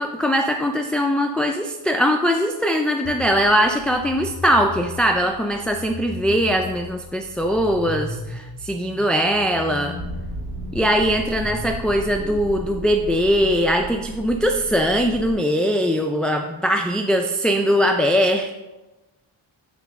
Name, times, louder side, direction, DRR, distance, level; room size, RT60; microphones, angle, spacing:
voice 1, 0.0-9.9 10.7-18.6, equal, ahead, 3 dB, 0.3 m, -21 dB
sound 1, 3.0-13.4, left 4 dB, 40° left, 1.4 m, -37 dB
Motor vehicle (road), 10.0-15.3, equal, 60° right, 0.9 m, -34 dB
7.8 x 4.1 x 3.6 m, 1.1 s
cardioid pair, 60°, 49 cm